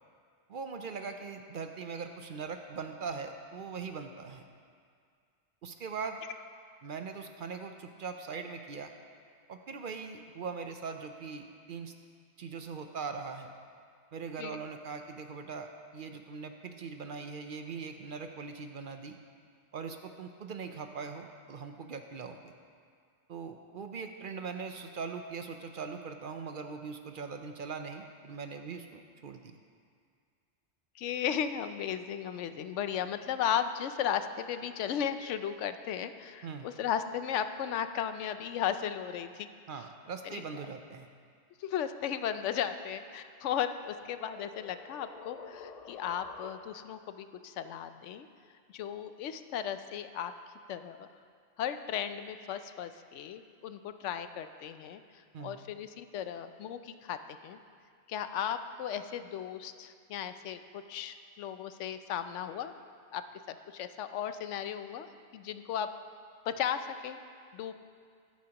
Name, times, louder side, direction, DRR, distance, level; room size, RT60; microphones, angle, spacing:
voice 1, 0.5-4.4 5.6-6.2 6.8-8.9 9.5-11.9 12.4-13.5 14.1-19.2 19.7-22.5 23.3-29.6 36.4-36.7 39.7-41.1 55.3-55.6, right 5 dB, 55° right, 6 dB, 0.7 m, -41 dB
voice 2, 31.0-39.5 40.2-40.4 41.6-48.3 48.7-50.3 50.7-51.1 51.6-57.6 58.1-62.7 63.1-65.9 66.5-67.2 67.5-67.7, left 9 dB, 90° left, 10 dB, 0.9 m, -35 dB
sound 1, 43.3-47.0, left 5 dB, 55° left, 0.4 m, -50 dB
14.0 x 11.5 x 2.9 m, 2.1 s
omnidirectional pair, 1.2 m